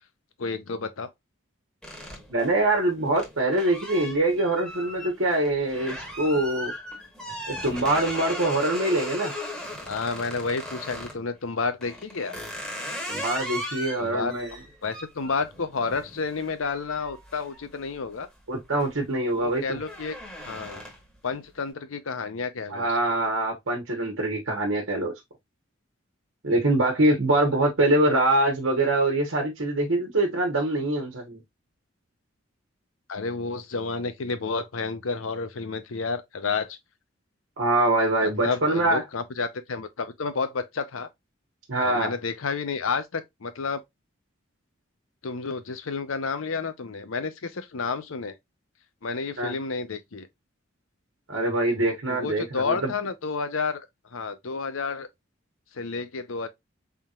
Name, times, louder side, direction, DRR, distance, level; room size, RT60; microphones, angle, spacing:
voice 1, 0.4-1.1 9.9-12.4 14.0-14.3 14.8-18.3 19.3-20.2 20.5-20.8 21.2-23.0 33.1-36.8 38.2-41.1 41.8-43.8 45.2-48.4 49.0-50.3 51.7-53.8 54.1-55.1 55.7-56.5, left 4 dB, 80° left, 0.7 m, -30 dB
sound 1, 1.8-11.2 11.8-18.2 18.6-19.0 19.3-21.2, equal, 5° left, 1.1 m, -37 dB
voice 2, 2.3-6.7 7.5-9.3 13.1-14.5 18.5-19.8 22.7-25.1 26.4-31.4 37.6-39.0 41.7-42.1 49.4-49.6 51.3-52.9, right 2 dB, 75° right, 1.2 m, -24 dB
4.3 x 3.6 x 2.4 m
head